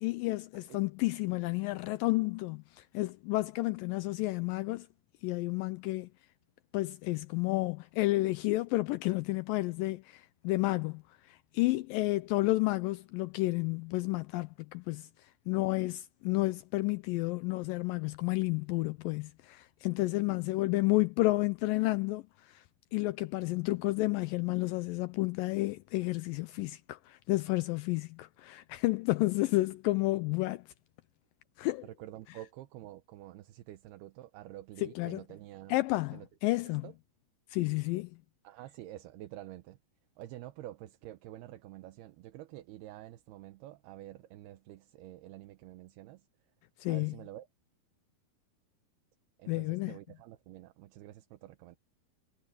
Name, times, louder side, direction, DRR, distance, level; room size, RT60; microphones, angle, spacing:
voice 1, 0.0-4.9 5.2-6.1 6.7-11.0 11.3-15.1 15.5-22.6 22.9-30.6 31.6-31.9 34.8-35.2 35.7-36.8 37.5-38.1 46.8-47.1 49.5-50.0, left 20 dB, 85° left, 2.0 m, -31 dB
voice 2, 31.8-35.8 36.1-36.9 38.4-39.8 40.2-46.3 46.9-47.5 49.4-51.8, right 14 dB, 80° right, 2.9 m, -48 dB
omnidirectional pair, 4.6 m